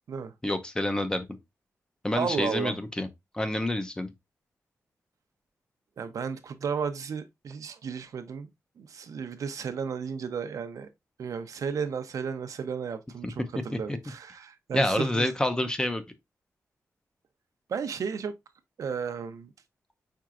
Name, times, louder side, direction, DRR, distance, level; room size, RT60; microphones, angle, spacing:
voice 1, 0.4-1.2 2.0-3.1 3.3-4.1 13.2-13.3 14.7-16.0, left 1 dB, 15° left, 0.6 m, -28 dB
voice 2, 2.2-2.8 6.0-8.5 8.8-10.9 11.2-15.3 17.7-18.3 18.8-19.5, right 6 dB, 80° right, 0.6 m, -33 dB
4.8 x 4.5 x 2.4 m
wide cardioid pair, 130°, 6 cm